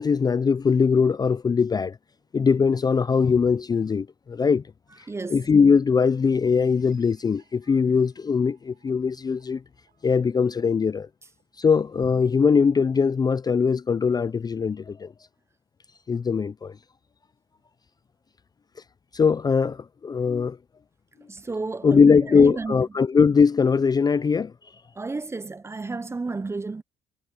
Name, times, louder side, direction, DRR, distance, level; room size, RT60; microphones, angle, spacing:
voice 1, 0.0-2.0 2.3-4.6 5.3-9.6 10.0-11.1 11.6-15.1 16.1-16.7 19.1-20.6 21.8-24.5, left 5 dB, 25° left, 0.4 m, -21 dB
voice 2, 5.1-5.5 21.3-22.9 25.0-26.8, right 3 dB, 15° right, 0.6 m, -32 dB
sound 1, 6.4-11.9, right 10 dB, 70° right, 4.9 m, -66 dB
cardioid pair, 100°, 16 cm